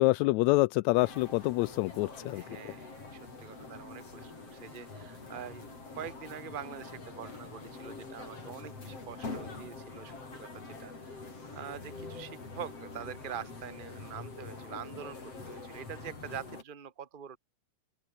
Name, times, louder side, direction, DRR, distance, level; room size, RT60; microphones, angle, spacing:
voice 1, 0.0-2.4, left 21 dB, 80° left, 1.7 m, -26 dB
sound 1, 1.0-16.6, left 3 dB, 50° left, 7.1 m, -45 dB
voice 2, 2.3-11.2 11.5-17.4, right 8 dB, 25° right, 1.2 m, -45 dB
Alarm, 2.8-10.0, left 3 dB, 30° left, 4.9 m, -60 dB
open air
omnidirectional pair, 3.5 m